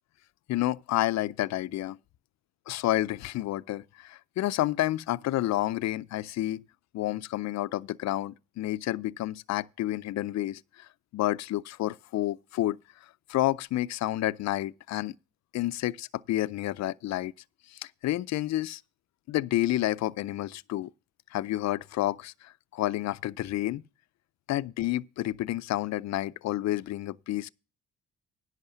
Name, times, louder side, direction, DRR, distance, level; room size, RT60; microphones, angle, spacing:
voice 1, 0.5-2.0 2.7-6.6 6.9-12.8 13.3-15.1 15.5-17.3 17.7-18.8 19.3-20.9 21.3-23.8 24.5-27.5, left 15 dB, 60° left, 0.5 m, -30 dB
10.5 x 5.8 x 7.0 m
cardioid pair, 90°, 30 cm